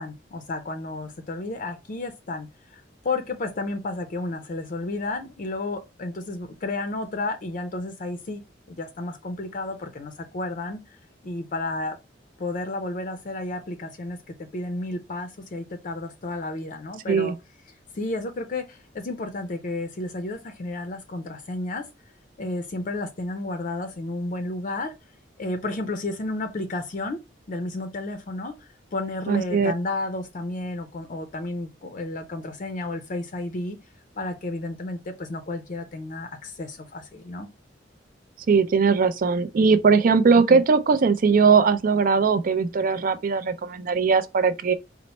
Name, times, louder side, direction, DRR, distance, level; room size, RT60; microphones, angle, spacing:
voice 1, 0.0-2.5 2.7-8.4 8.7-11.0 11.2-12.0 12.4-17.3 17.9-21.8 22.4-24.9 25.4-27.2 27.5-33.8 34.2-37.5 40.3-40.6, left 2 dB, 45° left, 0.5 m, -32 dB
voice 2, 29.3-29.7 38.5-44.7, right 5 dB, 50° right, 0.4 m, -20 dB
4.2 x 2.1 x 4.0 m
head